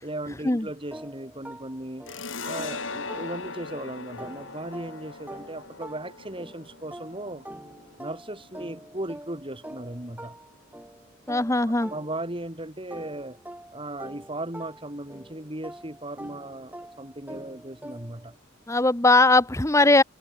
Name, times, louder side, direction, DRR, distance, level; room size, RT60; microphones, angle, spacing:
voice 1, 0.0-2.1 2.5-7.4 8.0-10.4 11.7-13.4 13.7-18.3, right 1 dB, 25° right, 3.6 m, -37 dB
sound 1, 0.9-3.8 4.2-12.5 12.9-18.3, right 1 dB, 10° right, 6.0 m, -45 dB
sound 2, 2.1-9.2, left 4 dB, 75° left, 6.3 m, -40 dB
voice 2, 11.3-11.9 18.7-20.0, left 2 dB, 15° left, 1.1 m, -19 dB
head